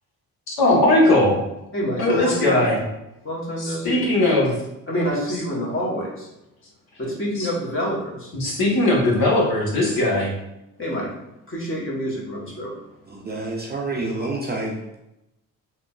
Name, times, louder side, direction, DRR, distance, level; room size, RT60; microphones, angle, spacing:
voice 1, 0.5-1.4 2.0-2.8 3.6-4.5 7.4-7.5 8.3-10.3, left 1 dB, 55° left, -2 dB, 1.3 m, -19 dB
voice 2, 1.7-2.7 3.2-4.1 4.9-6.3 7.0-8.3 10.8-11.1 11.5-12.7, equal, 30° left, -4 dB, 1.5 m, -27 dB
voice 3, 13.1-14.8, right 2 dB, 25° right, -2 dB, 0.6 m, -28 dB
3.6 x 2.8 x 2.3 m, 0.88 s
hypercardioid pair, 60°, 43 cm